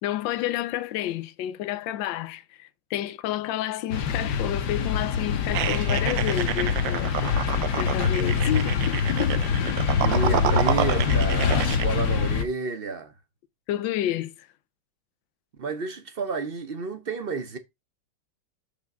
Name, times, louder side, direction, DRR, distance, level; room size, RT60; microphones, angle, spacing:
voice 1, 0.0-7.4 7.7-9.4 13.7-14.5, left 13 dB, 80° left, 1.3 m, -30 dB
sound 1, 3.9-12.4, left 6 dB, 65° left, 1.5 m, -24 dB
sound 2, 5.5-11.9, right 13 dB, 80° right, 1.3 m, -29 dB
voice 2, 10.0-13.1 15.6-17.6, right 4 dB, 50° right, 0.7 m, -31 dB
7.4 x 3.5 x 5.2 m
omnidirectional pair, 2.0 m